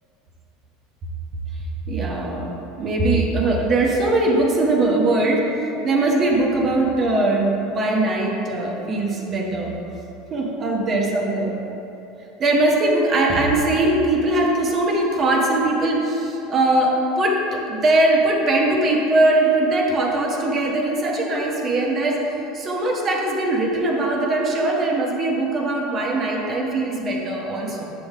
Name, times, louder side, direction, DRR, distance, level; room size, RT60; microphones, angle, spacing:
voice 1, 1.9-5.5 5.8-9.7 10.3-11.5 12.4-22.2 22.5-27.9, right 2 dB, 30° right, 0 dB, 0.9 m, -21 dB
8.1 x 6.7 x 3.7 m, 3.0 s
supercardioid pair, 150°, 0 cm